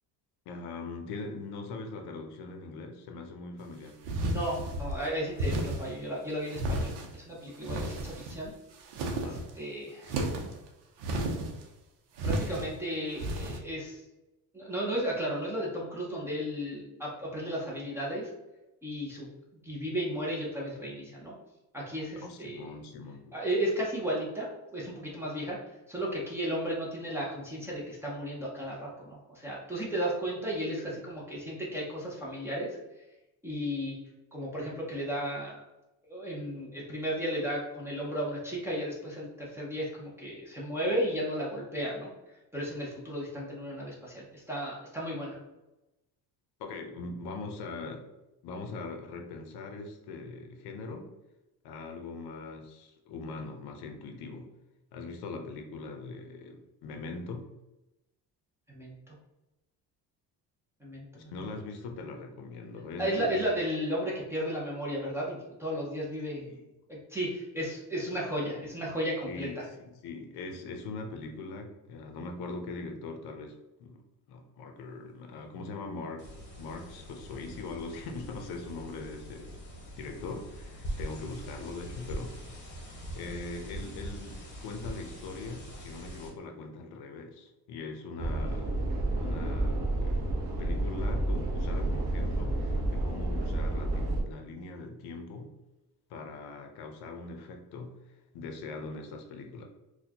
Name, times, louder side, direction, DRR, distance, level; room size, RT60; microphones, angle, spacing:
voice 1, 0.5-4.0 9.1-9.5 22.2-23.4 46.6-48.1 48.4-51.1 51.6-54.5 54.9-57.5 61.2-63.5 66.4-66.7 68.6-68.8 69.2-74.0 74.3-76.3 76.6-79.6 80.0-82.4 83.1-88.8 89.2-90.2 90.6-95.6 96.1-99.7, left 3 dB, 70° left, 4 dB, 0.7 m, -41 dB
sound 1, 4.0-5.0 5.4-5.9 6.5-7.2 7.6-8.5 8.8-9.5 10.0-10.6 11.0-11.6 12.2-12.7 13.2-13.6, right 1 dB, 80° right, 0.7 m, -32 dB
voice 2, 4.2-8.5 9.2-10.1 12.2-14.0 14.5-18.3 18.8-19.3 19.6-21.3 21.7-22.7 23.3-24.5 24.7-25.6 25.9-32.8 33.4-34.0 34.3-35.6 36.1-42.1 42.5-45.4 58.7-58.9 60.8-61.3 63.0-66.5 66.9-69.6, equal, 5° right, -5 dB, 0.6 m, -34 dB
sound 2, 76.2-86.3, equal, 25° left, 0.9 m, -43 dB
sound 3, 88.2-94.2, right 2 dB, 40° right, 0.7 m, -30 dB
4.3 x 2.3 x 2.8 m, 0.97 s
cardioid pair, 170°, 40 cm